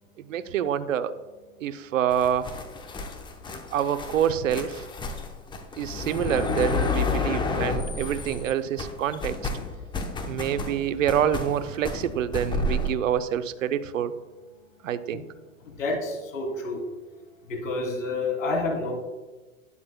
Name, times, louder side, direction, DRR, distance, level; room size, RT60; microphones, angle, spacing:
voice 1, 0.2-1.1 1.6-2.5 3.7-4.8 5.8-9.4 10.2-14.1 14.8-15.2, right 9 dB, 70° right, 12 dB, 0.7 m, -27 dB
sound 1, 2.1-8.5 8.8-12.9, left 3 dB, 10° left, 0.8 m, -30 dB
voice 2, 15.8-16.8 17.5-18.9, left 2 dB, 70° left, 0 dB, 3.0 m, -28 dB
12.0 x 9.7 x 2.2 m, 1.2 s
hypercardioid pair, 105°, 40 cm